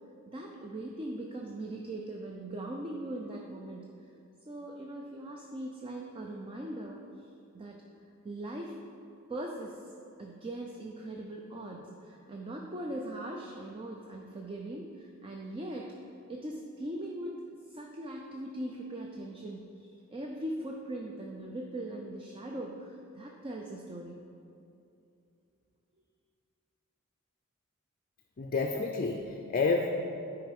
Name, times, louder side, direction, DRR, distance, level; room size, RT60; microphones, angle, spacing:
voice 1, 0.3-3.9 4.5-7.0 7.5-7.8 8.2-8.8 9.3-9.8 10.2-16.0 16.3-17.4 17.7-24.2, right 1 dB, 25° right, 0 dB, 0.5 m, -40 dB
voice 2, 28.4-29.9, left 4 dB, 40° left, 3 dB, 0.4 m, -29 dB
9.4 x 4.8 x 5.2 m, 2.6 s
head